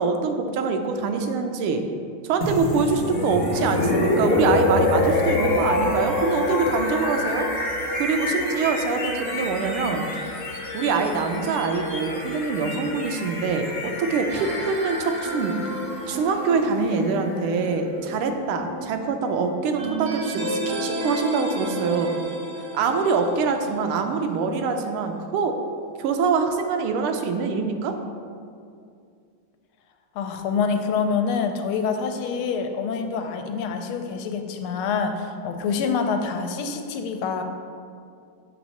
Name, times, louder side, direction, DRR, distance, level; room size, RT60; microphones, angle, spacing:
voice 1, 0.0-1.8 2.2-7.5 8.0-10.0 10.3-10.4 10.7-15.5 16.1-22.1 22.7-25.5 26.0-27.9, right 4 dB, 80° right, 5 dB, 1.5 m, -24 dB
sound 1, 2.4-18.3, left 2 dB, 50° left, 1.0 m, -27 dB
sound 2, 14.3-16.6 19.8-24.2, right 1 dB, 65° right, 0.6 m, -33 dB
sound 3, 15.2-22.2, equal, 10° right, 0.5 m, -38 dB
voice 2, 30.1-37.4, left 5 dB, 85° left, 5 dB, 1.5 m, -26 dB
7.2 x 3.6 x 6.2 m, 2.4 s
omnidirectional pair, 2.4 m